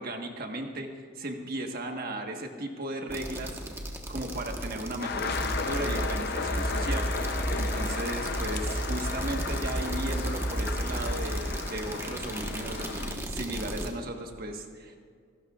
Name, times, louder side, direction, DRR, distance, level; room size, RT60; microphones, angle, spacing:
voice 1, 0.0-3.6 4.1-15.0, right 1 dB, 45° right, 3 dB, 1.4 m, -36 dB
sound 1, 3.1-13.9, right 1 dB, 10° right, 1.2 m, -33 dB
sound 2, 5.0-13.2, left 5 dB, 50° left, 0.6 m, -35 dB
28.0 x 12.0 x 2.4 m, 2.1 s
head